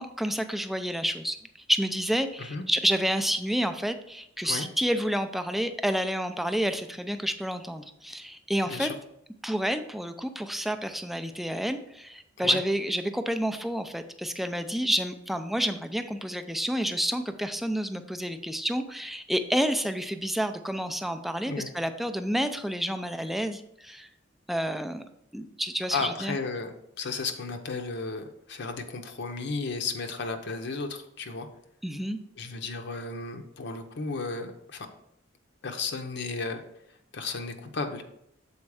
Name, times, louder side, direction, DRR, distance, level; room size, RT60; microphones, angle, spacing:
voice 1, 0.0-1.4 1.7-8.9 9.4-24.1 24.5-25.0 25.3-26.4 31.8-32.2, equal, ahead, 8 dB, 0.4 m, -29 dB
voice 2, 8.6-9.0 12.4-12.6 21.5-21.7 25.9-31.5 32.4-34.9 35.6-36.6 37.1-38.0, left 4 dB, 65° left, 5 dB, 0.7 m, -34 dB
7.1 x 4.3 x 4.8 m, 0.77 s
head